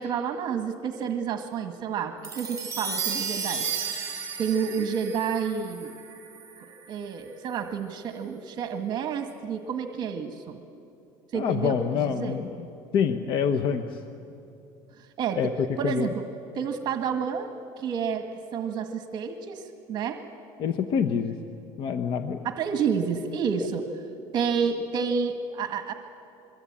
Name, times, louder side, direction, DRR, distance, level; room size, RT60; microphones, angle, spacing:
voice 1, 0.0-3.7 4.4-5.9 6.9-10.6 11.3-12.4 15.0-15.5 15.8-16.3 16.5-17.5 17.8-20.2 22.4-23.8 24.3-25.9, right 6 dB, 45° right, 6 dB, 1.6 m, -29 dB
sound 1, 2.2-6.8, right 6 dB, 30° right, 7.0 m, -33 dB
voice 2, 11.3-12.5 12.9-14.0 15.3-16.1 20.6-21.4 21.8-22.4, left 7 dB, 55° left, 7 dB, 1.1 m, -26 dB
25.5 x 23.5 x 8.8 m, 2.7 s
cardioid pair, 130°, 10 cm